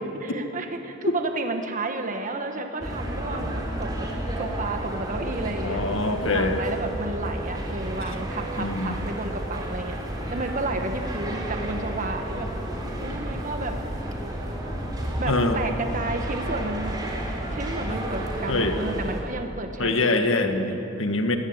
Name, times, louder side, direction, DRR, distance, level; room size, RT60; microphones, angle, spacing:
voice 1, 0.2-4.1 4.4-5.8 6.2-10.0 10.3-12.5 13.0-13.8 15.2-17.0 17.5-20.8, right 2 dB, 40° right, 5 dB, 1.4 m, -32 dB
sound 1, 2.8-19.2, right 1 dB, 20° right, 3.5 m, -31 dB
voice 2, 5.6-6.6 8.6-9.0 15.3-15.6 18.5-18.8 19.8-21.4, left 2 dB, 65° left, 5 dB, 1.7 m, -24 dB
21.5 x 16.5 x 8.0 m, 2.9 s
head